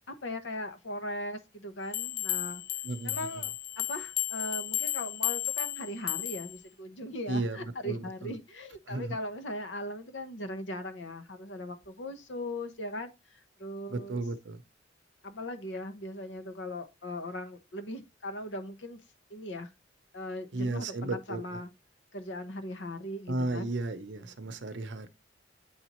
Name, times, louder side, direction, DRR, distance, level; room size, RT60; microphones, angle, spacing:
voice 1, 0.1-2.6 3.0-14.2 15.2-19.0 19.3-19.7 20.1-21.7 22.1-23.8 24.4-24.6, left 1 dB, 75° left, 1.0 m, -39 dB
sound 1, 1.9-6.6, left 14 dB, 50° left, 0.4 m, -33 dB
voice 2, 2.8-3.4 7.3-8.3 8.9-9.1 13.9-14.6 20.5-21.6 23.3-25.1, right 2 dB, 70° right, 0.8 m, -34 dB
8.8 x 4.1 x 3.0 m
head